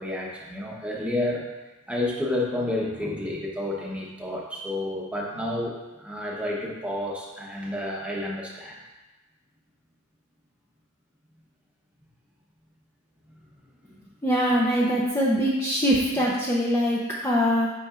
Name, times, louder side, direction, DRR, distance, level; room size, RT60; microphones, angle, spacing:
voice 1, 0.0-1.4 1.9-8.8 13.8-13.9, left 1 dB, 5° right, -3 dB, 0.9 m, -30 dB
voice 2, 14.2-17.7, equal, 10° left, -6 dB, 0.5 m, -23 dB
8.5 x 5.3 x 2.5 m, 1.1 s
head